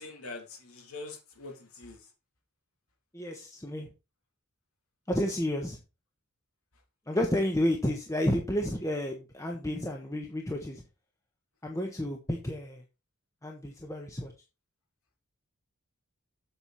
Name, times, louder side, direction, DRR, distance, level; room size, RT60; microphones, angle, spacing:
voice 1, 0.0-2.1 7.8-7.9, left 3 dB, 75° left, 3.3 m, -44 dB
voice 2, 3.1-3.9 5.1-5.8 7.1-10.8 11.6-12.8 13.4-14.3, left 1 dB, 15° left, 1.3 m, -31 dB
8.0 x 7.6 x 4.2 m
head